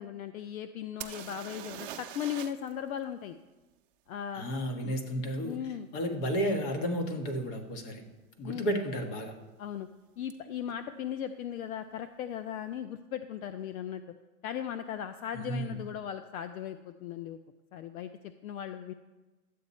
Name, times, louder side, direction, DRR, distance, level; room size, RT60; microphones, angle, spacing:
voice 1, 0.0-3.4 4.1-4.4 4.8-5.0 5.4-5.9 8.4-8.7 9.6-9.9 10.2-14.0 14.4-17.4 17.7-18.1 18.4-18.9, left 9 dB, 65° left, 11 dB, 0.7 m, -37 dB
sound 1, 1.0-2.7 3.0-3.1 6.5-6.6 7.2-7.4 7.7-8.3 10.3-10.4 10.7-10.8, right 11 dB, 40° right, 0.7 m, -43 dB
voice 2, 4.3-5.6 5.9-8.0 8.4-9.3 15.3-15.7, equal, 35° left, 5 dB, 1.5 m, -32 dB
12.5 x 8.6 x 4.3 m, 1.2 s
supercardioid pair, 155°, 45 cm